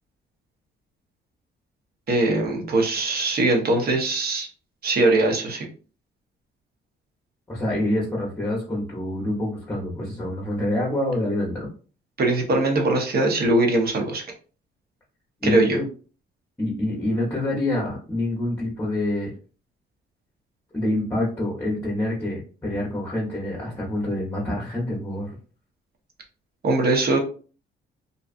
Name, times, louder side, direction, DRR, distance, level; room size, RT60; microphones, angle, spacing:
voice 1, 2.1-4.5 4.8-5.7 12.2-14.2 15.4-15.8 26.6-27.2, right 2 dB, 50° right, 2 dB, 0.8 m, -21 dB
voice 2, 7.5-11.7 15.4-15.9 16.6-19.3 20.7-25.4, left 1 dB, 15° left, -3 dB, 0.8 m, -26 dB
2.6 x 2.3 x 2.4 m, 0.38 s
cardioid pair, 90°, 20 cm